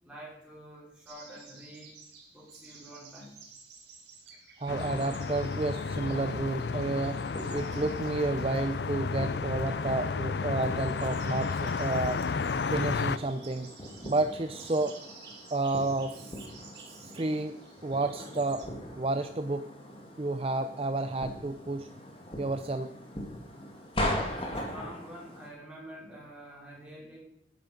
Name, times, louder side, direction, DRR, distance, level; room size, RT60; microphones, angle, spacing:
voice 1, 0.0-1.9 2.3-3.3 24.0-27.2, equal, 5° right, -5 dB, 4.7 m, -47 dB
sound 1, 1.1-18.7, right 4 dB, 75° right, 3.7 m, -53 dB
voice 2, 4.6-7.2 7.5-12.2 12.7-13.7 14.0-15.0 15.5-16.2 17.1-18.7 19.0-19.7 20.2-21.9 22.4-22.9, right 2 dB, 30° right, 8 dB, 0.5 m, -31 dB
sound 2, 4.7-13.2, left 4 dB, 65° left, 0.5 m, -32 dB
sound 3, 5.8-25.5, left 1 dB, 30° left, 2.5 m, -41 dB
12.0 x 10.5 x 5.2 m, 0.77 s
head